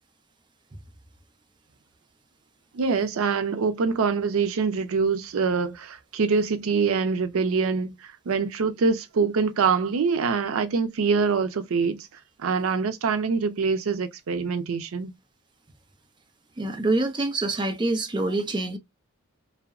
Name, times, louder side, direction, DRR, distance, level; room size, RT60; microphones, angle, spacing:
voice 1, 2.7-15.1, right 5 dB, 80° right, 0.4 m, -25 dB
voice 2, 16.6-18.8, right 2 dB, 20° right, 0.5 m, -26 dB
2.7 x 2.0 x 2.3 m
head